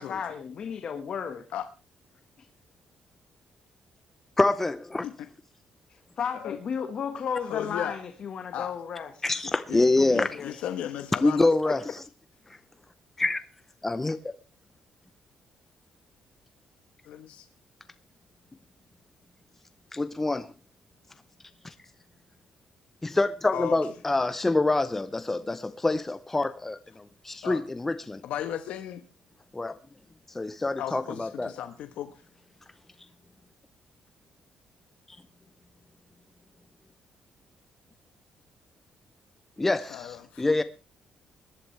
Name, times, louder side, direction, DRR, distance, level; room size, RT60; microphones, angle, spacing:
voice 1, 0.0-1.5 6.2-9.2 10.0-10.5, left 7 dB, 45° left, 1.6 m, -34 dB
voice 2, 4.4-5.1 9.2-10.4 11.2-12.0 13.2-13.4 13.8-14.2 19.9-20.5 21.6-21.7 23.0-28.2 29.5-29.7 30.3-31.5 39.6-40.6, left 2 dB, 15° left, 0.7 m, -26 dB
voice 3, 7.4-8.0 8.5-8.7 9.7-9.8 10.1-11.7 17.0-17.5 23.5-23.8 27.4-27.6 28.2-29.0 30.8-32.2 39.9-40.4, left 10 dB, 90° left, 1.2 m, -35 dB
21.5 x 11.5 x 3.3 m
cardioid pair, 150°, 2 cm